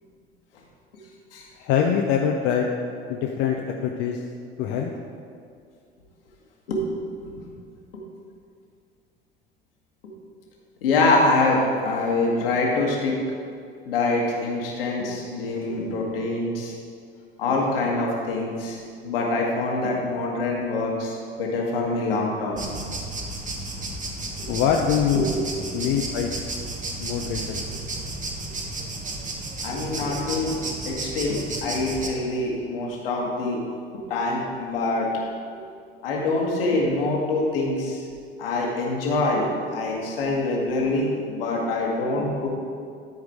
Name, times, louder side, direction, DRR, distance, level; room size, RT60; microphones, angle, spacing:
voice 1, 1.6-2.7 3.1-4.2 4.6-4.9 24.5-25.3 25.7-26.4 27.0-27.6, left 8 dB, 50° left, 1 dB, 0.8 m, -24 dB
voice 2, 10.8-13.2 13.8-16.7 17.4-22.6 25.1-25.4 29.6-30.6 30.8-33.6 33.9-35.1 36.0-38.0 38.4-42.5, left 2 dB, 70° left, -2 dB, 1.7 m, -25 dB
sound 1, 22.6-32.1, right 2 dB, 25° right, 1.4 m, -33 dB
12.5 x 4.8 x 4.8 m, 2.3 s
figure-of-eight pair, 65°, 29 cm